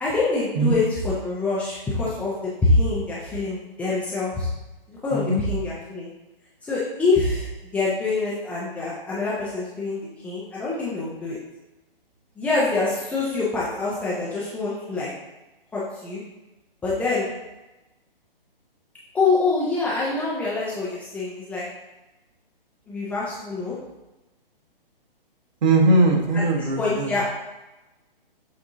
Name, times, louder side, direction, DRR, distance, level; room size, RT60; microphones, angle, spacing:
voice 1, 0.0-4.5 4.9-6.1 6.6-7.5 7.7-11.4 12.4-15.1 15.7-16.2 16.8-17.3 19.1-21.6 22.9-23.7 26.8-27.4, left 3 dB, 5° left, -8 dB, 0.6 m, -25 dB
voice 2, 5.1-5.4 25.6-27.1, right 2 dB, 50° right, 0 dB, 1.5 m, -20 dB
7.4 x 3.7 x 3.7 m, 1.0 s
figure-of-eight pair, 130°, 29 cm